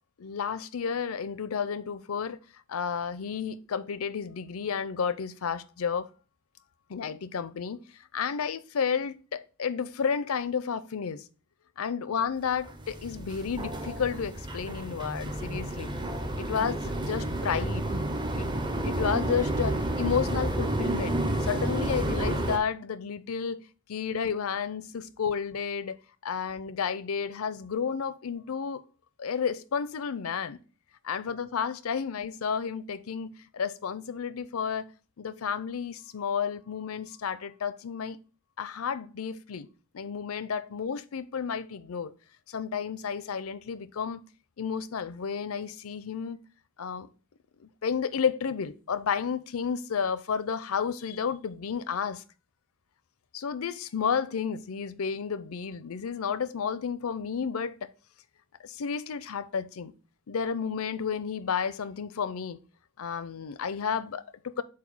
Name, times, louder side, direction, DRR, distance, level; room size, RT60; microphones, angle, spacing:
voice 1, 0.2-2.4 2.7-6.1 6.9-7.8 8.1-11.2 11.8-15.9 16.4-17.9 18.3-18.5 18.8-23.6 23.9-26.0 26.2-28.8 29.2-30.6 31.0-34.9 35.2-38.2 38.6-39.7 39.9-42.1 42.5-44.2 44.6-46.4 46.8-47.1 47.6-52.2 53.3-57.9 58.6-59.9 60.3-62.6 63.0-64.6, left 6 dB, 85° left, 0.5 m, -31 dB
sound 1, 12.6-22.6, right 1 dB, 20° right, 0.6 m, -30 dB
8.0 x 2.7 x 5.3 m
head